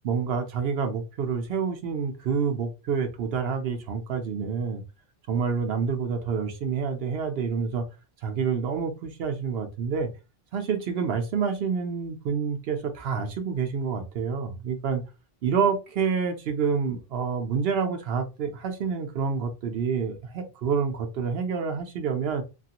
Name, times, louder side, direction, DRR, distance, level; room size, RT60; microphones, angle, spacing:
voice 1, 0.0-4.8 5.3-7.8 8.2-10.1 10.5-15.0 15.4-22.4, right 6 dB, 75° right, 0.8 m, -28 dB
2.9 x 2.4 x 2.8 m
omnidirectional pair, 1.0 m